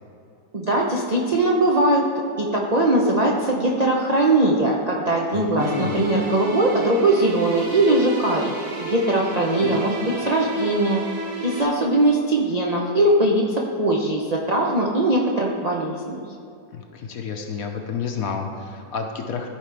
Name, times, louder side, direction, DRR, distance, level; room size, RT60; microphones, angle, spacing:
voice 1, 0.5-2.1 2.4-11.0 11.4-16.2, right 1 dB, 70° right, -3 dB, 0.3 m, -20 dB
voice 2, 5.3-6.1 9.6-9.8 16.7-19.5, left 6 dB, 65° left, 3 dB, 1.0 m, -30 dB
sound 1, 5.6-11.6, right 2 dB, 55° right, 1.5 m, -32 dB
13.5 x 4.9 x 3.3 m, 2.6 s
omnidirectional pair, 1.9 m